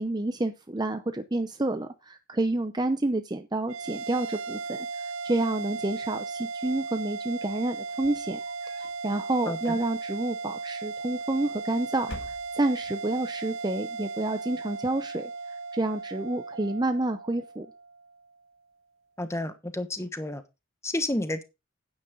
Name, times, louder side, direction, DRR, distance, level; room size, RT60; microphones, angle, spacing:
voice 1, 0.0-8.4 8.8-17.7, right 2 dB, 20° right, 8 dB, 0.6 m, -29 dB
sound 1, 3.7-18.3, right 4 dB, 80° right, 0.7 m, -36 dB
sound 2, 7.8-9.0 9.5-10.2 11.2-11.7 12.0-12.9, left 1 dB, 55° left, 1.7 m, -45 dB
voice 2, 19.2-20.4 20.8-21.4, left 1 dB, 15° left, 10 dB, 1.2 m, -31 dB
9.6 x 9.5 x 3.8 m, 0.25 s
head